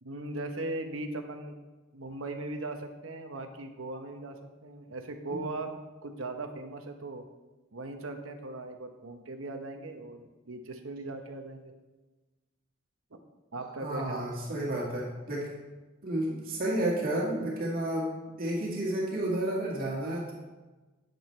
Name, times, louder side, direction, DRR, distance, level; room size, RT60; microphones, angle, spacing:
voice 1, 0.0-1.6 1.9-4.4 4.6-5.8 6.0-7.2 7.7-11.7 13.5-14.4, right 2 dB, 70° right, 5 dB, 1.0 m, -39 dB
voice 2, 13.8-15.5 16.0-18.1 18.4-20.3, right 1 dB, 45° right, -4 dB, 2.0 m, -31 dB
9.0 x 8.6 x 3.3 m, 1.2 s
head